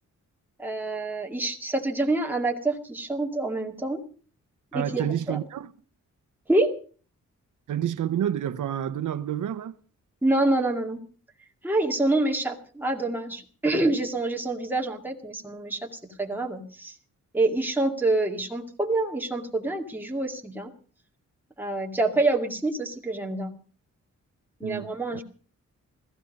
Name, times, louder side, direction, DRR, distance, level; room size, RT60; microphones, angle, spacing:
voice 1, 0.6-4.0 4.7-5.4 6.5-6.7 10.2-11.0 11.6-16.9 17.3-20.7 21.6-23.5 24.6-25.2, right 2 dB, 5° right, 2.1 m, -26 dB
voice 2, 4.7-5.7 7.7-9.7 24.6-24.9, right 10 dB, 80° right, 0.8 m, -29 dB
15.5 x 15.5 x 5.2 m
wide cardioid pair, 170°, 30 cm